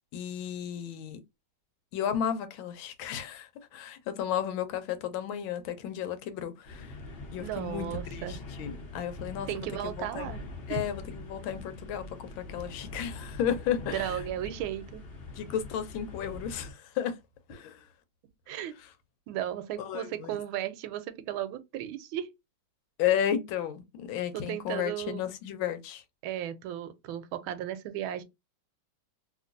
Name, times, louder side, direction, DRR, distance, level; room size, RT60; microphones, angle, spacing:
voice 1, 0.1-1.2 1.9-6.9 7.3-9.7 10.0-10.3 10.7-14.2 15.4-17.2 17.5-17.9 19.8-20.4 23.0-26.0, left 9 dB, 80° left, 1.4 m, -33 dB
sound 1, 6.6-16.7, left 2 dB, 50° left, 0.7 m, -43 dB
voice 2, 7.4-8.4 9.5-10.4 10.7-10.8 13.9-15.1 18.5-18.7 19.3-22.3 24.3-25.2 26.2-28.2, right 11 dB, 85° right, 1.4 m, -35 dB
2.9 x 2.9 x 2.5 m
omnidirectional pair, 2.2 m